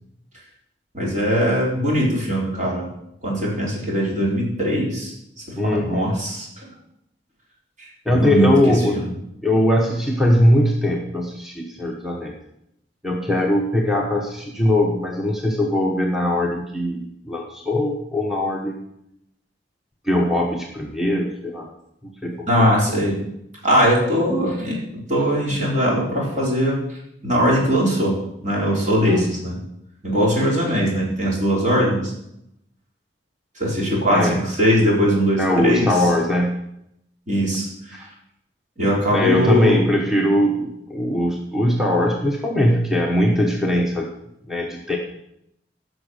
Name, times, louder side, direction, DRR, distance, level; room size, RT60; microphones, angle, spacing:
voice 1, 0.9-2.9 3.2-5.1 5.5-6.7 7.8-9.1 22.5-23.2 23.6-24.8 25.1-27.0 27.2-29.6 30.0-32.1 33.6-36.1 37.3-38.1 38.8-39.8, equal, 45° right, -4 dB, 4.5 m, -21 dB
voice 2, 5.6-6.2 8.0-9.0 9.4-12.4 13.0-18.8 20.0-21.7 22.0-22.5 29.1-29.3 34.0-34.4 35.4-36.6 37.9-38.1 39.1-44.1 44.5-45.0, left 1 dB, ahead, -1 dB, 1.1 m, -21 dB
15.5 x 6.3 x 6.5 m, 0.80 s
head